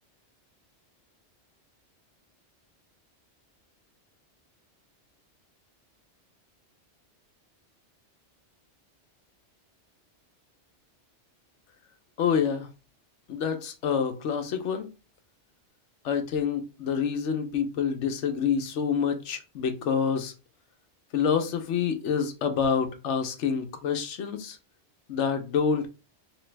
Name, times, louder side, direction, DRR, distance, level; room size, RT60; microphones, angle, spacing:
voice 1, 12.2-12.7 13.3-14.9 16.0-20.3 21.1-24.6 25.1-25.9, left 7 dB, 85° left, 7 dB, 1.0 m, -27 dB
3.2 x 3.0 x 3.3 m, 0.31 s
omnidirectional pair, 1.2 m